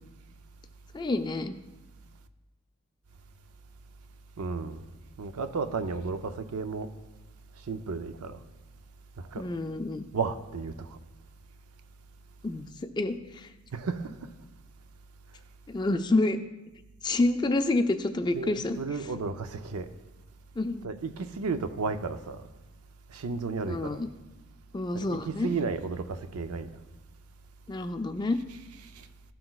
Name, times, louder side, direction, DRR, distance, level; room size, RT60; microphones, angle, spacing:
voice 1, 0.9-1.6 9.4-10.1 12.4-13.5 15.7-16.4 17.0-18.8 20.6-20.9 23.7-24.1 24.7-25.5 27.7-28.4, left 2 dB, 20° left, 0.3 m, -28 dB
voice 2, 4.4-4.8 5.2-6.9 7.7-8.4 9.2-9.5 10.1-11.0 13.7-14.3 18.3-19.9 20.8-22.4 23.1-24.0 24.9-26.7 28.9-29.1, right 4 dB, 85° right, 0.5 m, -33 dB
13.5 x 5.8 x 2.3 m
head